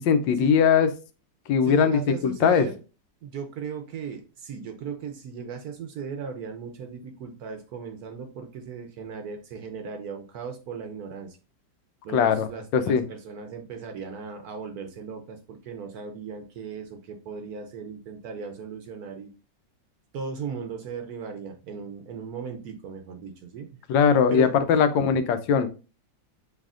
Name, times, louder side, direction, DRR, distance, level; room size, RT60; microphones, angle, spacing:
voice 1, 0.0-0.9 1.5-2.7 12.1-12.5 12.7-13.0 23.9-25.7, left 7 dB, 85° left, 10 dB, 1.3 m, -20 dB
voice 2, 1.6-2.8 3.2-11.4 12.0-19.3 20.1-23.8 24.3-24.7, right 6 dB, 65° right, 6 dB, 1.0 m, -37 dB
6.4 x 3.4 x 2.4 m, 0.33 s
omnidirectional pair, 2.0 m